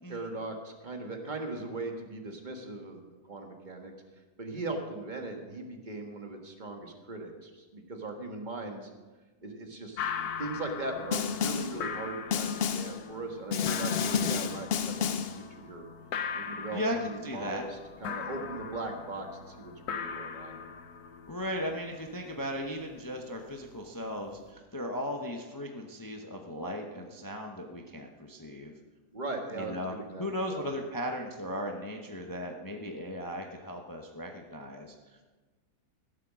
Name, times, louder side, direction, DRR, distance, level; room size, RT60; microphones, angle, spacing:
voice 1, 0.1-3.9 4.4-8.9 9.4-15.8 16.3-20.6 29.1-30.6, right 2 dB, 30° right, 3 dB, 1.5 m, -39 dB
sound 1, 10.0-24.5, left 7 dB, 75° left, 1.4 m, -40 dB
Snare drum, 11.1-11.8 12.3-13.0 13.5-15.4, left 7 dB, 55° left, 0.7 m, -30 dB
voice 2, 16.7-17.6 21.3-28.7 29.5-34.9, equal, 15° left, 2 dB, 0.7 m, -37 dB
15.5 x 7.4 x 6.2 m, 1.3 s
omnidirectional pair, 1.7 m